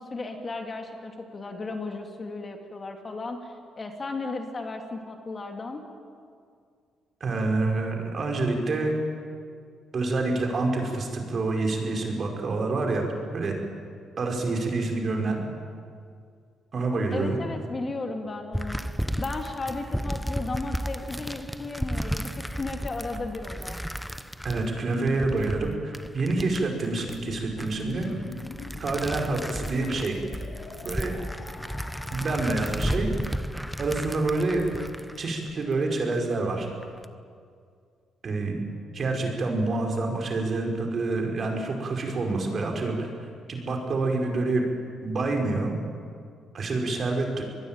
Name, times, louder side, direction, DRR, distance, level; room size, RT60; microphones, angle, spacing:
voice 1, 0.0-5.8 17.1-18.8 19.2-23.8, left 3 dB, 35° left, 4 dB, 2.9 m, -35 dB
voice 2, 7.2-8.9 9.9-13.1 13.3-13.6 14.2-15.4 16.7-17.4 24.4-28.1 28.8-30.2 30.8-31.1 32.1-33.1 33.8-34.8 35.2-36.7 38.2-38.6 38.9-43.1 43.5-44.6 45.0-45.7 46.5-47.4, right 3 dB, 45° right, 2 dB, 5.2 m, -27 dB
sound 1, 18.5-36.1 36.6-37.0, equal, ahead, 0.9 m, -34 dB
sound 2, 27.1-32.3, left 5 dB, 65° left, 3.2 m, -43 dB
24.5 x 20.5 x 9.1 m, 2.2 s
cardioid pair, 90°, 0 cm